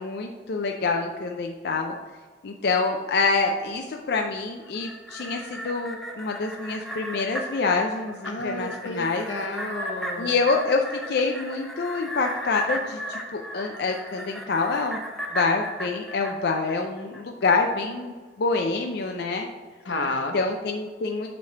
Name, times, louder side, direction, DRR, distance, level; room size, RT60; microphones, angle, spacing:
voice 1, 0.0-1.9 2.4-9.3 10.2-15.0 15.3-18.1 18.4-19.5 20.3-21.3, left 4 dB, 60° left, 3 dB, 0.5 m, -26 dB
sound 1, 4.6-17.2 17.6-17.7, equal, ahead, 0.6 m, -36 dB
voice 2, 8.3-10.3 19.8-20.4, left 2 dB, 90° left, 4 dB, 1.0 m, -31 dB
6.7 x 3.3 x 5.7 m, 1.5 s
head